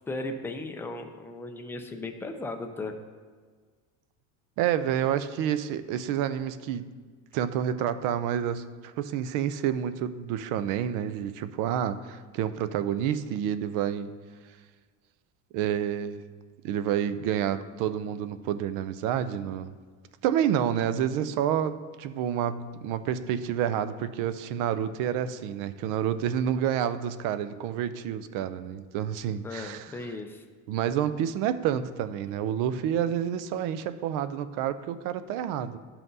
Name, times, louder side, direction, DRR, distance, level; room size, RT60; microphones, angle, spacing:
voice 1, 0.1-2.9 29.4-30.4, left 2 dB, 5° left, 5 dB, 0.4 m, -36 dB
voice 2, 4.6-6.9 7.3-14.1 15.5-16.2 16.6-19.7 20.2-29.9 30.7-35.8, right 9 dB, 60° right, 12 dB, 0.5 m, -29 dB
12.0 x 5.7 x 2.7 m, 1.5 s
cardioid pair, 140°, 37 cm